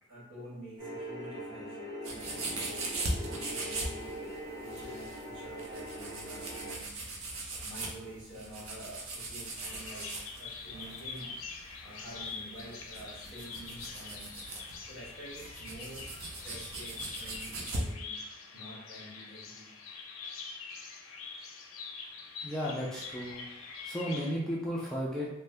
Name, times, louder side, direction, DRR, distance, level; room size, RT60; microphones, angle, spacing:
voice 1, 0.1-2.9 3.2-6.9 7.5-14.3 14.9-16.1 16.4-19.7, right 1 dB, 65° right, -7 dB, 1.3 m, -49 dB
sound 1, 0.8-6.8, equal, 20° right, 1.3 m, -42 dB
sound 2, 2.0-17.9, right 2 dB, 80° right, 0.6 m, -40 dB
Bird vocalization bird call bird song, 9.6-24.3, left 4 dB, 75° left, 0.4 m, -44 dB
voice 2, 22.4-23.5 23.8-25.3, equal, 5° left, -5 dB, 0.3 m, -34 dB
2.7 x 2.1 x 3.3 m, 0.89 s
head